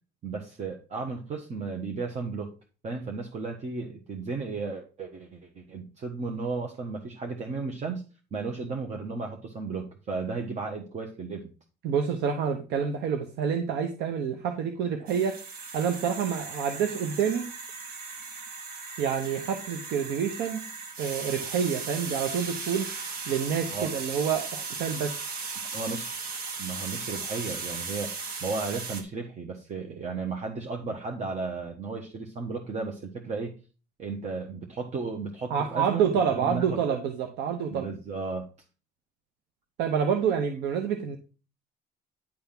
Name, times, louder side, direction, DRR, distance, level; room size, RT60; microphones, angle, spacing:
voice 1, 0.2-2.5 2.8-8.0 8.3-11.5 23.7-23.9 25.6-26.2 26.6-28.1 28.4-33.5 34.0-37.0 37.7-38.5, right 4 dB, 45° right, 1.3 m, -34 dB
voice 2, 11.8-15.4 15.7-17.5 19.0-20.6 21.0-22.9 23.3-25.2 35.5-37.9 39.8-41.2, right 7 dB, 85° right, 0.9 m, -28 dB
sound 1, 15.1-29.0, right 4 dB, 60° right, 2.1 m, -37 dB
10.5 x 3.5 x 5.8 m
cardioid pair, 110°, 17 cm